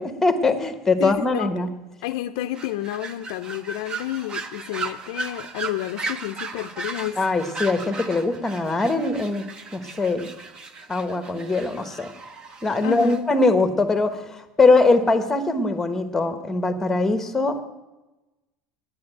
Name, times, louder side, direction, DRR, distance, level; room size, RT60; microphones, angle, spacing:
voice 1, 0.0-1.7 7.2-10.3 10.9-12.1 12.6-17.6, left 3 dB, 10° left, 9 dB, 1.2 m, -22 dB
voice 2, 1.0-1.5 2.0-7.2 12.8-13.2, left 14 dB, 75° left, 8 dB, 0.5 m, -30 dB
sound 1, 2.5-13.2, right 4 dB, 25° right, 1.0 m, -36 dB
9.8 x 9.6 x 9.1 m, 1.1 s
supercardioid pair, 145°, 3 cm